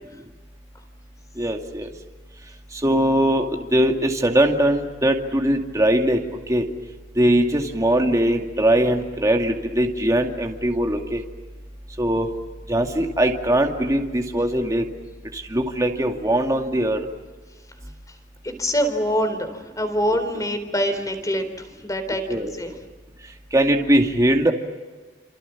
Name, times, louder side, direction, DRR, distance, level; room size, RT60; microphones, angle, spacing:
voice 1, 1.4-1.9 2.8-6.2 6.5-6.6 7.2-11.2 12.0-12.3 12.7-14.8 15.3-17.0 22.3-22.5 23.5-24.5, right 1 dB, 20° right, 2 dB, 2.3 m, -20 dB
voice 2, 18.4-22.7, equal, 20° left, 8 dB, 3.9 m, -25 dB
28.5 x 27.5 x 7.3 m, 1.3 s
head